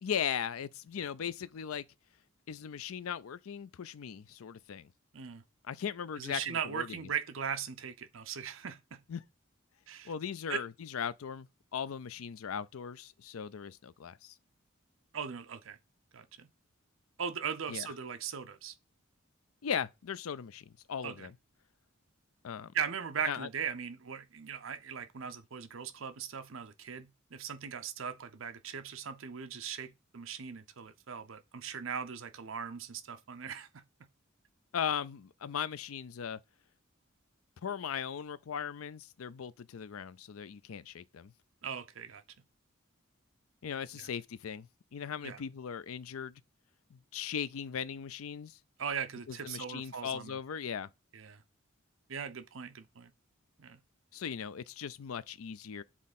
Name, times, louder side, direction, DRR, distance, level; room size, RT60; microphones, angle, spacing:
voice 1, 0.0-1.8 2.5-4.9 5.7-7.1 9.1-9.2 10.0-14.3 17.7-17.9 19.6-21.4 22.4-22.7 23.2-23.5 34.7-36.4 37.6-41.3 43.6-46.4 46.9-48.6 49.3-50.9 54.1-55.8, left 7 dB, 90° left, 0.5 m, -38 dB
voice 2, 6.2-9.0 9.9-10.1 10.5-10.6 15.1-15.8 16.1-16.5 17.2-18.7 21.0-21.3 22.7-33.8 41.6-42.2 43.9-44.0 45.2-45.4 48.8-50.4 51.1-51.4 52.1-53.1 53.6-53.8, right 7 dB, 70° right, 0.7 m, -39 dB
7.4 x 3.7 x 4.1 m
head